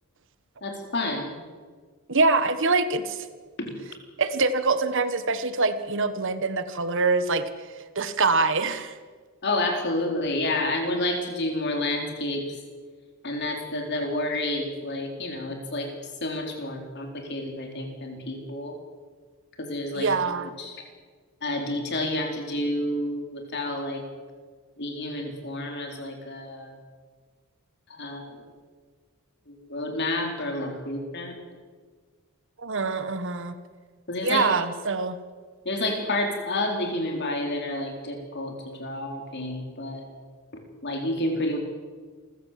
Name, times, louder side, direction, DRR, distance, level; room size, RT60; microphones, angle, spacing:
voice 1, 0.6-1.3 3.6-3.7 9.4-12.6 13.2-15.9 16.2-18.8 19.6-20.8 21.4-24.0 24.8-26.8 27.9-28.4 29.5-31.4 34.1-34.5 35.6-40.1 40.8-41.6, left 1 dB, 50° left, 3 dB, 4.2 m, -30 dB
voice 2, 2.1-3.2 4.2-7.5 7.9-8.9 19.9-20.5 32.6-33.5 34.2-35.2, right 3 dB, 60° right, 11 dB, 1.4 m, -24 dB
27.0 x 15.0 x 7.6 m, 1.5 s
head